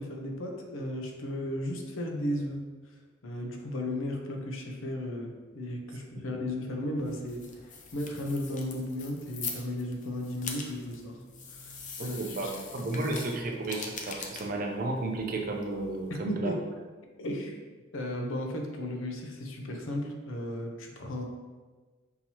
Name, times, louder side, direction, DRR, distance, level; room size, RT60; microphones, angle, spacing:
voice 1, 0.0-2.7 3.2-11.2 11.5-12.5 16.1-16.6 17.2-17.5 17.9-21.2, left 1 dB, 80° left, 2 dB, 0.7 m, -35 dB
sound 1, 7.0-16.2, left 5 dB, 40° left, 0.5 m, -43 dB
voice 2, 12.0-16.6, right 2 dB, 45° right, 2 dB, 0.6 m, -33 dB
5.7 x 2.8 x 2.9 m, 1.3 s
head